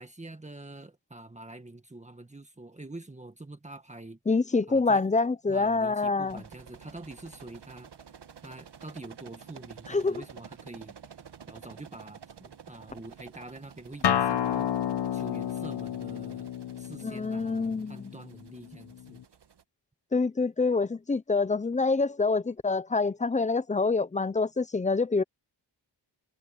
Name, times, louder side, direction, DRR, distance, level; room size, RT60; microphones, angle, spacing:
voice 1, 0.0-4.2 4.7-5.1 5.5-7.9 8.4-10.9 11.5-14.7 15.1-16.5 16.8-19.2, right 2 dB, 15° right, 1.8 m, -46 dB
voice 2, 4.3-6.4 9.9-10.2 17.0-18.1 20.1-25.2, left 3 dB, 15° left, 0.5 m, -26 dB
sound 1, 6.2-19.6, right 7 dB, 65° right, 1.8 m, -51 dB
Acoustic guitar, 14.0-19.2, left 9 dB, 65° left, 0.9 m, -31 dB
wide cardioid pair, 140°, 44 cm